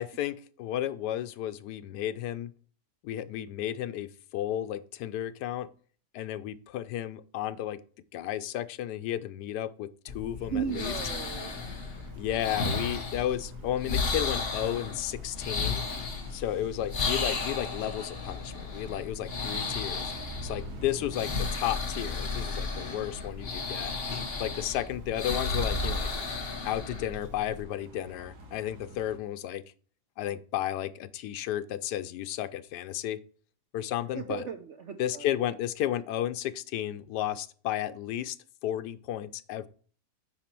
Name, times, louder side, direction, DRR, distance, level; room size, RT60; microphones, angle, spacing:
voice 1, 0.0-2.5 3.0-5.7 6.1-7.8 8.1-10.9 12.2-15.9 16.3-20.1 20.4-23.9 24.4-26.1 26.6-29.6 30.2-33.2 33.7-34.4 35.0-38.4 38.6-39.7, left 12 dB, 85° left, 12 dB, 1.2 m, -33 dB
sound 1, 10.1-27.6, left 4 dB, 40° left, 1.2 m, -34 dB
voice 2, 10.4-11.6 34.1-35.4, right 7 dB, 55° right, 6 dB, 0.9 m, -36 dB
sound 2, 11.1-29.2, right 2 dB, 80° right, 2.1 m, -49 dB
9.2 x 4.3 x 4.4 m, 0.43 s
omnidirectional pair, 1.7 m